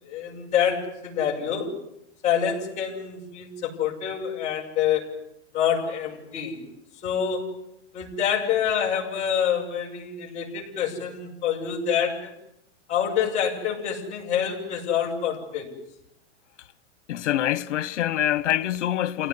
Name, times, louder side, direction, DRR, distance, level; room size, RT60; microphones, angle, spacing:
voice 1, 0.0-1.7 2.2-5.1 5.5-6.6 7.0-7.5 7.9-12.3 12.9-15.7, left 8 dB, 20° left, 7.2 m, -26 dB
voice 2, 17.1-19.3, left 12 dB, 90° left, 1.5 m, -25 dB
30.0 x 18.5 x 9.9 m
supercardioid pair, 180°, 35 cm